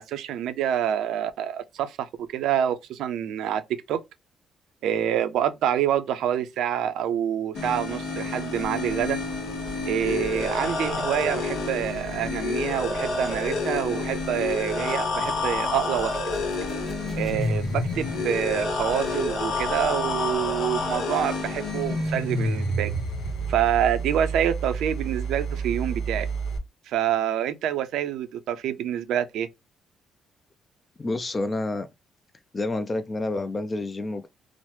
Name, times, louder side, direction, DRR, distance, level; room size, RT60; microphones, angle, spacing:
voice 1, 0.0-3.6 3.9-4.0 4.8-9.2 9.9-16.1 17.2-22.9 23.5-26.3 26.9-29.5, right 10 dB, 85° right, 0.4 m, -27 dB
sound 1, 7.5-26.6, left 1 dB, 80° left, 0.9 m, -29 dB
sound 2, 8.5-23.5, equal, 5° right, 0.9 m, -44 dB
voice 2, 31.0-31.9 32.5-34.3, left 2 dB, 30° left, 0.3 m, -29 dB
2.9 x 2.0 x 3.1 m
cardioid pair, 90°, 0 cm